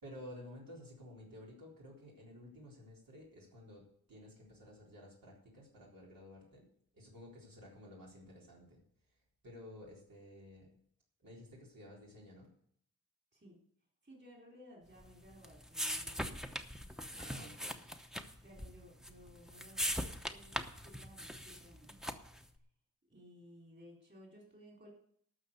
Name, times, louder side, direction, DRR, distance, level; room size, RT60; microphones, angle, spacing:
voice 1, 0.0-6.7 6.9-8.8 9.4-10.7 11.2-12.5 17.2-17.8, left 1 dB, 75° right, -3 dB, 4.0 m, -53 dB
voice 2, 14.0-16.5 17.1-17.7 18.4-19.9 20.3-22.2 23.1-24.9, equal, 30° right, -1 dB, 4.1 m, -58 dB
sound 1, 15.0-22.5, equal, ahead, 0.8 m, -41 dB
12.5 x 6.5 x 8.2 m, 0.66 s
wide cardioid pair, 125°, 34 cm